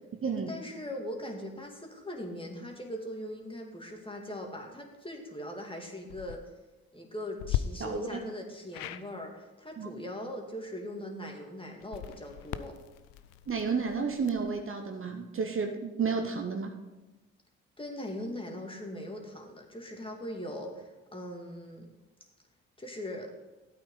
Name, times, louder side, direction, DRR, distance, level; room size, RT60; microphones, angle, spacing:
voice 1, 0.4-6.4 6.9-12.8 17.8-21.9 22.8-23.3, left 1 dB, 15° left, 1 dB, 2.3 m, -40 dB
sound 1, 6.0-6.4 7.4-7.6 8.7-9.0 11.8-14.6, left 14 dB, 75° left, 0.6 m, -38 dB
voice 2, 7.8-8.2 9.8-10.0 13.5-16.8, right 5 dB, 40° right, 4 dB, 1.2 m, -32 dB
13.0 x 8.7 x 4.0 m, 1.1 s
hypercardioid pair, 45°, 33 cm